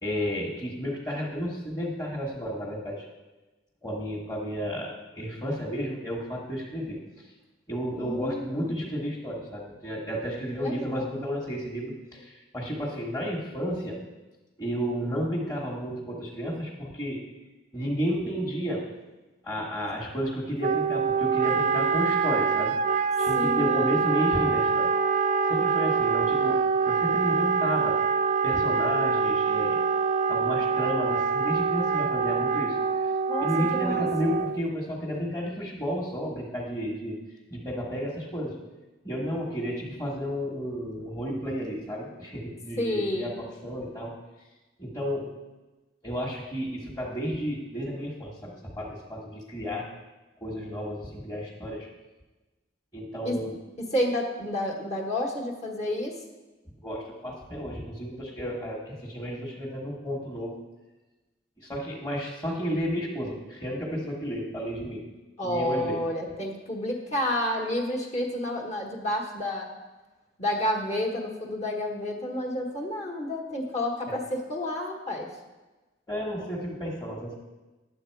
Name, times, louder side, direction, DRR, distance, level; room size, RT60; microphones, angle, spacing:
voice 1, 0.0-3.1 3.8-7.3 7.7-14.0 14.6-17.2 17.7-18.9 19.4-22.8 23.2-24.9 25.4-28.0 28.4-29.9 30.3-33.1 33.4-37.2 37.5-38.6 39.0-44.1 44.8-45.3 46.0-49.9 50.4-51.9 52.9-53.6 56.8-60.5 61.6-65.1 65.4-66.0 74.1-74.2 76.1-77.3, equal, 15° left, -6 dB, 1.3 m, -32 dB
voice 2, 8.0-8.9 10.6-11.1 23.3-24.0 33.3-34.0 42.8-43.4 53.2-53.4 53.8-56.2 65.4-69.7 70.4-75.3, left 1 dB, 40° left, 0 dB, 1.4 m, -30 dB
Wind instrument woodwind instrument, 20.6-34.7, right 5 dB, 40° right, 0.3 m, -25 dB
10.5 x 7.7 x 4.6 m, 1.1 s
head